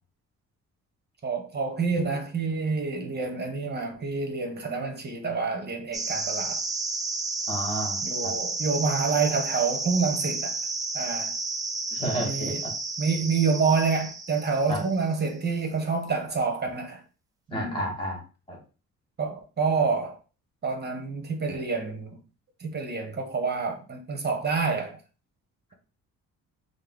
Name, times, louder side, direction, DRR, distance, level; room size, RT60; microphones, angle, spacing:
voice 1, 1.2-6.6 8.0-10.6 10.9-11.3 12.2-12.6 13.0-17.0 17.5-17.9 19.2-20.2 20.6-22.2 22.6-25.0, right 4 dB, 30° right, 1.0 m, -28 dB
sound 1, 5.9-15.1, right 3 dB, 10° right, 0.5 m, -32 dB
voice 2, 7.5-8.3 11.9-12.7 14.7-14.8 17.5-18.2 18.5-18.6, equal, 15° left, 1.9 m, -31 dB
5.3 x 2.0 x 3.9 m
cardioid pair, 125°, 31 cm